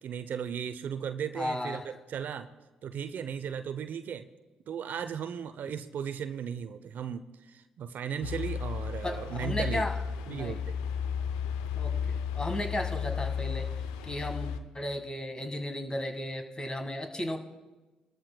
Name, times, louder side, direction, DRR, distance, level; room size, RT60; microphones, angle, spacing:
voice 1, 0.0-2.5 2.8-4.3 4.7-9.8 10.3-10.7, right 8 dB, 60° right, 11 dB, 0.6 m, -36 dB
voice 2, 1.3-1.9 9.0-10.0 10.3-10.6 11.7-13.7 14.0-17.4, left 1 dB, 25° left, 5 dB, 1.7 m, -35 dB
sound 1, 8.2-14.6, left 7 dB, 85° left, 0.5 m, -33 dB
21.5 x 13.0 x 2.2 m, 1.2 s
hypercardioid pair, 45°, 3 cm